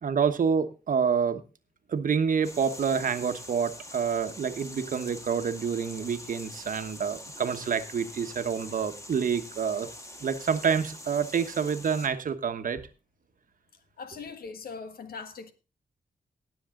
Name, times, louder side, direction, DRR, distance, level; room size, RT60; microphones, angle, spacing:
voice 1, 0.0-1.4 1.9-9.9 10.2-12.8, right 6 dB, 60° right, 1.2 m, -28 dB
sound 1, 2.4-12.1, left 1 dB, 20° left, 1.8 m, -44 dB
voice 2, 14.0-15.5, left 5 dB, 80° left, 1.5 m, -40 dB
18.0 x 7.1 x 3.8 m
cardioid pair, 70°, 15 cm